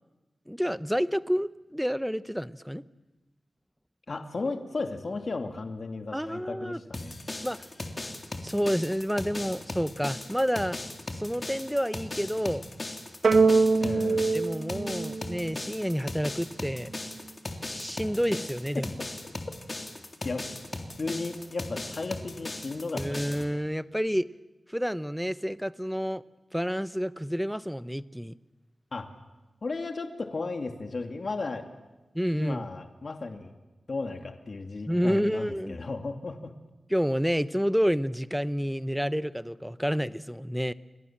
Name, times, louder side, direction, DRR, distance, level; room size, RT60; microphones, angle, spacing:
voice 1, 0.5-2.8 6.1-6.8 7.4-7.7 8.4-10.8 11.1-12.6 14.3-16.9 17.6-19.0 22.9-24.3 24.7-26.2 26.5-28.3 32.1-32.7 34.9-35.8 36.9-40.7, equal, ahead, 15 dB, 0.9 m, -29 dB
voice 2, 4.1-7.2 13.8-14.2 20.2-20.5 21.0-23.4 28.9-29.1 29.6-31.6 32.3-33.5 33.9-36.5, left 3 dB, 60° left, 6 dB, 2.5 m, -35 dB
sound 1, 6.9-23.4, left 2 dB, 35° left, 3.5 m, -38 dB
sound 2, 13.2-15.8, right 4 dB, 75° right, 1.2 m, -23 dB
30.0 x 23.5 x 7.5 m, 1.1 s
wide cardioid pair, 80°, 0 cm